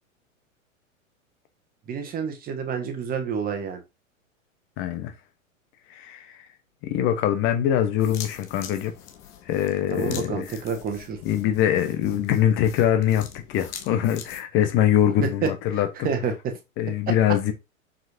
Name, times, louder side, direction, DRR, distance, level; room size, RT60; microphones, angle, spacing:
voice 1, 1.9-3.8 9.9-11.2 15.2-15.5 16.0-16.5, right 6 dB, 20° right, 1.6 m, -28 dB
voice 2, 4.8-5.1 5.9-6.5 6.8-8.9 9.4-10.6 11.2-16.1 16.8-17.5, left 10 dB, 30° left, 1.1 m, -23 dB
sound 1, 8.0-14.4, left 9 dB, 10° left, 0.3 m, -43 dB
6.9 x 6.3 x 2.8 m
figure-of-eight pair, 100°, 40 cm